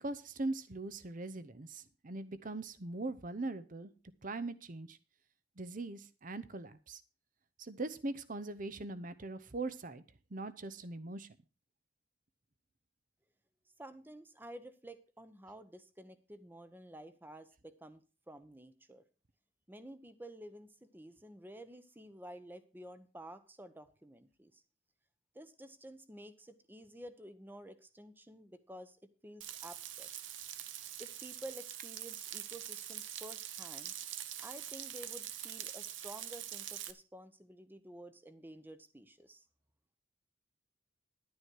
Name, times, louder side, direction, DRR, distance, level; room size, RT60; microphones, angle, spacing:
voice 1, 0.0-3.9 4.2-5.0 5.6-7.0 7.6-10.0 10.3-11.3, right 2 dB, 45° right, 15 dB, 0.8 m, -41 dB
voice 2, 13.8-19.0 19.7-24.6 25.3-29.0 29.2-30.1 31.0-33.9 34.4-39.4, right 1 dB, 10° right, 11 dB, 0.9 m, -51 dB
Frying (food), 29.4-36.9, right 11 dB, 75° right, 0.9 m, -44 dB
11.0 x 9.7 x 4.6 m, 0.33 s
head